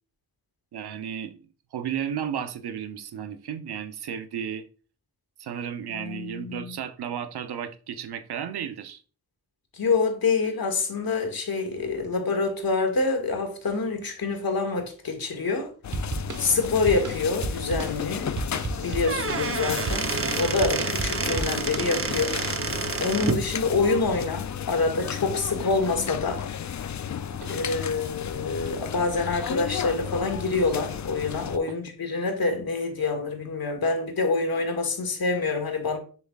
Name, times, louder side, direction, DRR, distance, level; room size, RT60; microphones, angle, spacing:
voice 1, 0.7-1.4 1.7-4.6 5.4-9.0 27.3-27.7 31.5-31.8, right 8 dB, 90° right, 0.8 m, -34 dB
voice 2, 5.9-6.8 9.7-15.7 16.4-18.3 18.8-22.4 23.0-26.4 27.5-36.0, left 3 dB, 65° left, 1.9 m, -26 dB
sound 1, 15.8-31.6, left 8 dB, 50° left, 0.5 m, -33 dB
sound 2, 15.9-22.4, right 3 dB, 50° right, 1.3 m, -34 dB
Squeak / Wood, 18.9-23.5, right 5 dB, 35° right, 0.8 m, -29 dB
7.6 x 7.0 x 2.4 m
cardioid pair, 45°, 38 cm